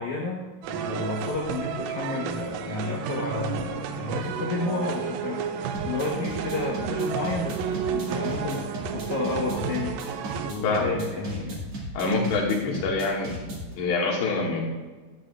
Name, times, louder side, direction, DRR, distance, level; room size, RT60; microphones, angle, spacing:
voice 1, 0.0-11.6 12.6-12.8, left 3 dB, 70° left, -3 dB, 1.8 m, -31 dB
sound 1, 0.6-10.5, right 7 dB, 85° right, 2.1 m, -32 dB
sound 2, 5.7-13.7, right 1 dB, 45° right, 2.3 m, -36 dB
voice 2, 10.6-11.0 12.0-13.4 13.8-14.7, left 3 dB, 90° left, -2 dB, 4.1 m, -25 dB
13.0 x 10.0 x 2.4 m, 1.3 s
omnidirectional pair, 5.0 m